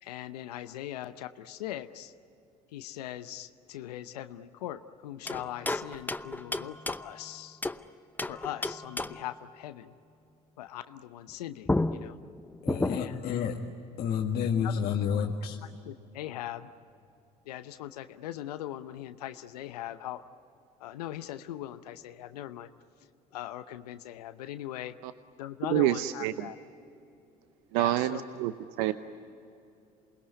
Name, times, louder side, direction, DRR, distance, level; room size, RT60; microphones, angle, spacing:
voice 1, 0.0-2.1 2.7-7.6 8.2-9.9 10.6-12.2 12.8-13.3 14.6-14.7 15.1-15.2 15.9-16.7 17.5-20.2 20.8-22.7 23.3-24.9 25.4-26.6 27.7-28.3, left 13 dB, 80° left, 11 dB, 0.8 m, -40 dB
sound 1, 5.3-7.8 8.2-9.4 11.3-11.4 11.7-13.3, left 2 dB, 10° left, 0.8 m, -33 dB
voice 2, 12.6-13.6 14.0-15.6, left 7 dB, 55° left, 0 dB, 1.8 m, -30 dB
voice 3, 25.7-26.5 27.7-28.5 28.8-28.9, right 15 dB, 70° right, 12 dB, 0.8 m, -27 dB
28.0 x 20.5 x 9.7 m, 2.7 s
hypercardioid pair, 60°, 20 cm